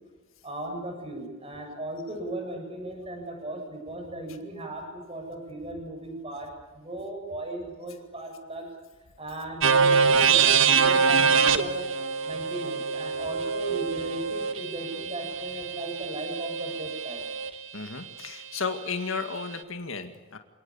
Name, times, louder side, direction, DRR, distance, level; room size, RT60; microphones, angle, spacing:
voice 1, 0.4-8.7 9.2-11.8 12.2-17.2, right 2 dB, 25° right, 2 dB, 7.4 m, -37 dB
sound 1, 9.6-17.5, right 6 dB, 65° right, 1.4 m, -24 dB
voice 2, 17.7-20.4, left 4 dB, 70° left, 6 dB, 2.1 m, -33 dB
28.0 x 19.0 x 8.7 m, 1.2 s
head